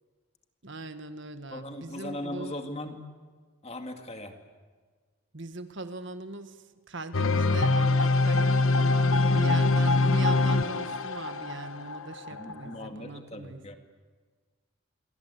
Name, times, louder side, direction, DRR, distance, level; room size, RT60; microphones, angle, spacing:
voice 1, 0.6-2.5 5.3-6.6 6.9-13.6, right 2 dB, 55° right, 1.6 m, -40 dB
voice 2, 1.5-3.0 3.6-4.4 9.0-9.2 12.3-13.8, left 1 dB, 30° left, 2.1 m, -39 dB
sound 1, 7.1-12.8, left 3 dB, 70° left, 1.1 m, -24 dB
28.5 x 23.5 x 8.3 m
head